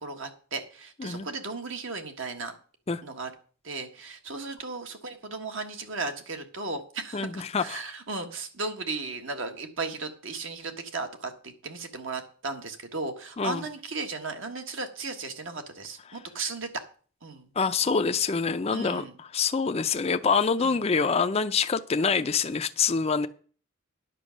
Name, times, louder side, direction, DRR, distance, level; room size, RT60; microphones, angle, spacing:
voice 1, 0.0-2.5 3.0-3.3 3.6-16.7 17.2-17.5 18.7-19.2 20.6-20.8, right 3 dB, 60° right, 1.5 m, -36 dB
voice 2, 7.1-7.8 13.4-13.6 17.6-23.3, left 5 dB, 30° left, 0.4 m, -26 dB
10.0 x 6.9 x 6.4 m
head